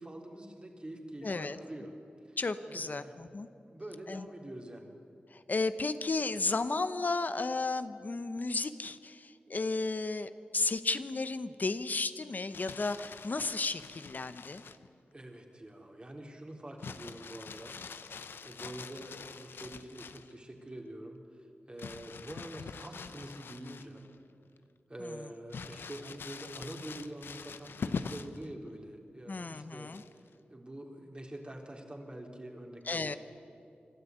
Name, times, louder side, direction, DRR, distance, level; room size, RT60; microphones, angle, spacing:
voice 1, 0.0-1.9 2.2-2.4 2.7-3.1 3.7-4.9 15.1-17.8 18.4-24.1 24.9-29.9 30.2-33.2, right 1 dB, 30° right, 1 dB, 3.6 m, -46 dB
voice 2, 1.2-1.6 2.4-3.5 4.1-4.3 5.3-14.6 25.0-25.2 29.3-30.0 32.9-33.2, left 3 dB, 50° left, 11 dB, 0.9 m, -33 dB
Crumpling crinkling, 12.3-14.9 16.8-20.3 21.8-24.2 24.6-24.7 25.5-28.5 29.9-30.3, left 5 dB, 85° left, 0.7 m, -44 dB
26.0 x 12.5 x 9.4 m, 2.5 s
cardioid pair, 50°, 4 cm